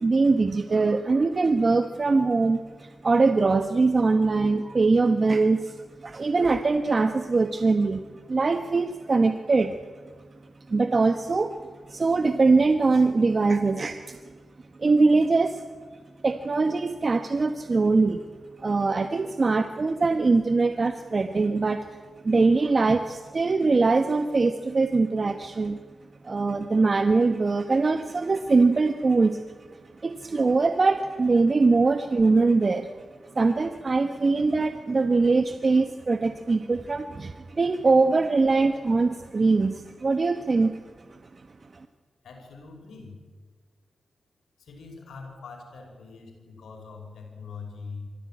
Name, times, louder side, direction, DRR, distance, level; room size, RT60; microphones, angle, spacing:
voice 1, 0.0-8.0 8.3-9.8 10.7-11.5 11.9-14.2 14.8-15.6 16.2-18.2 18.6-22.0 22.2-25.8 26.2-29.4 30.0-32.9 33.3-40.7, right 3 dB, 50° right, 8 dB, 1.3 m, -22 dB
voice 2, 42.2-43.2 44.6-48.1, left 4 dB, 80° left, 2 dB, 5.5 m, -43 dB
24.0 x 15.0 x 9.0 m, 1.5 s
cardioid pair, 45°, 0 cm